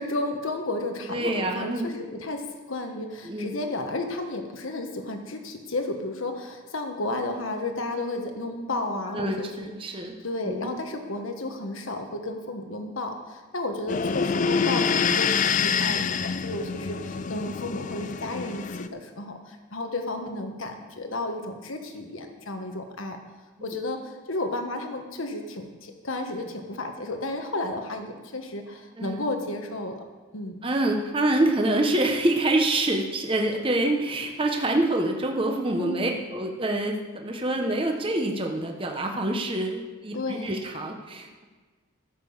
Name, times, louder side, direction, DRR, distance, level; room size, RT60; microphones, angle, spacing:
voice 1, 0.0-23.2 23.6-30.0 30.3-30.6 35.8-36.2 40.1-40.6, left 2 dB, 70° left, 5 dB, 1.4 m, -32 dB
voice 2, 1.1-1.9 3.2-3.5 9.1-10.1 10.4-10.7 23.6-23.8 29.0-29.3 30.6-41.4, right 1 dB, 25° right, 2 dB, 1.0 m, -26 dB
sound 1, 13.9-18.9, left 6 dB, 35° left, 0.4 m, -26 dB
14.0 x 6.9 x 7.1 m, 1.4 s
head